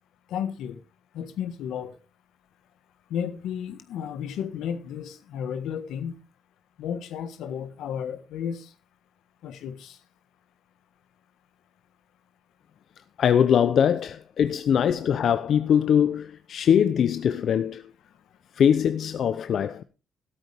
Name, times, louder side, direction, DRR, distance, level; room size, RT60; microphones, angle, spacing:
voice 1, 0.3-0.8 1.1-2.0 3.1-6.2 6.8-8.7 9.4-10.0, left 8 dB, 85° left, 1.5 m, -33 dB
voice 2, 13.2-17.8 18.6-19.8, left 8 dB, 65° left, 0.7 m, -22 dB
13.0 x 12.5 x 3.5 m
cardioid pair, 90°, 0 cm